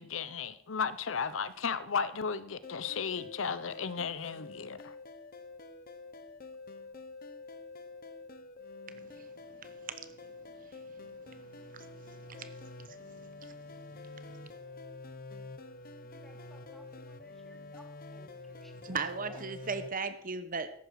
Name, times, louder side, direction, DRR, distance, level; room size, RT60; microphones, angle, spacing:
voice 1, 0.0-4.9, left 6 dB, 70° left, 15 dB, 0.7 m, -34 dB
sound 1, 2.6-19.9, left 3 dB, 50° left, 1.0 m, -47 dB
voice 2, 16.0-19.0 19.3-19.4, equal, ahead, 3 dB, 2.0 m, -58 dB
voice 3, 18.8-20.7, right 4 dB, 45° right, 11 dB, 1.0 m, -36 dB
14.0 x 11.5 x 4.7 m, 0.66 s
head